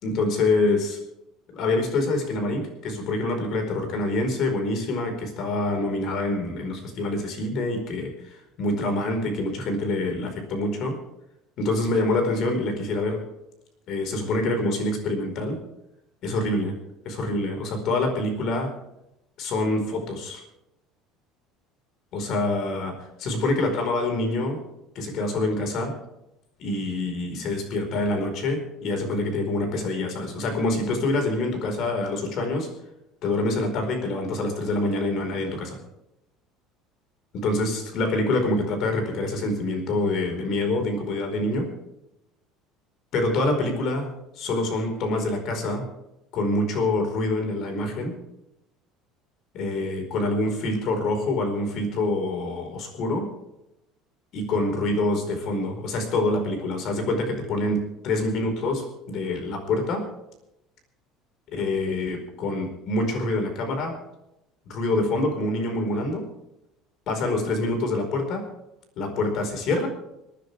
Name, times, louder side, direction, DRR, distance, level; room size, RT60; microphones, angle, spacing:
voice 1, 0.0-1.0 1.5-11.0 11.6-13.2 13.9-15.6 16.2-16.8 17.0-18.7 19.4-20.4 22.1-24.6 24.9-26.0 26.6-32.7 33.2-35.8 37.3-41.7 43.1-44.1 44.4-45.8 46.3-48.2 49.5-53.3 54.3-60.0 61.5-64.0 64.6-66.3 67.1-68.5 69.0-69.9, left 2 dB, 45° left, 4 dB, 4.8 m, -26 dB
27.5 x 10.0 x 3.5 m, 0.89 s
cardioid pair, 155°, 0 cm